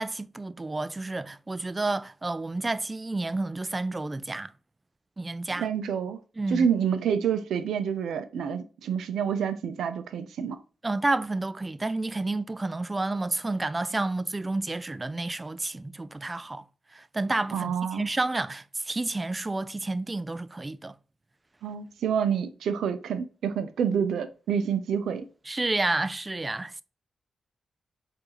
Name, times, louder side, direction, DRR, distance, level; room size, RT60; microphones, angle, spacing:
voice 1, 0.0-4.5 5.2-5.7 6.4-6.7 10.8-16.6 16.9-21.0 25.5-26.8, right 2 dB, 25° right, 0.3 m, -30 dB
voice 2, 5.6-6.2 6.5-10.6 17.5-18.0 21.6-25.3, right 7 dB, 85° right, 0.5 m, -28 dB
4.6 x 2.6 x 2.9 m
cardioid pair, 55°, 0 cm